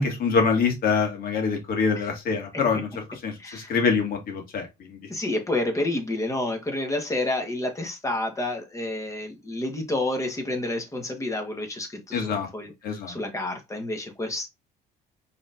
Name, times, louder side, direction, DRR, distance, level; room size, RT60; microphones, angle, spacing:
voice 1, 0.0-5.0 12.1-12.5 12.8-13.2, left 5 dB, 60° left, 1.9 m, -25 dB
voice 2, 3.4-3.7 5.1-12.7 13.1-14.5, left 2 dB, 20° left, 1.3 m, -29 dB
5.0 x 3.5 x 2.5 m
cardioid pair, 110°, 17 cm